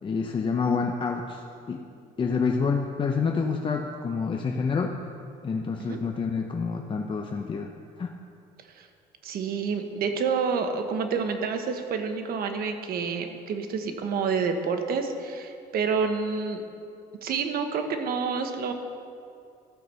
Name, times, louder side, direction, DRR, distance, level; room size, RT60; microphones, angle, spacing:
voice 1, 0.0-1.8 2.2-5.0 5.4-7.7 8.0-8.1, left 5 dB, 30° left, 2 dB, 0.7 m, -28 dB
voice 2, 9.2-16.6 17.2-18.7, right 5 dB, 65° right, 6 dB, 1.2 m, -28 dB
13.5 x 6.0 x 6.8 m, 2.5 s
cardioid pair, 110°, 17 cm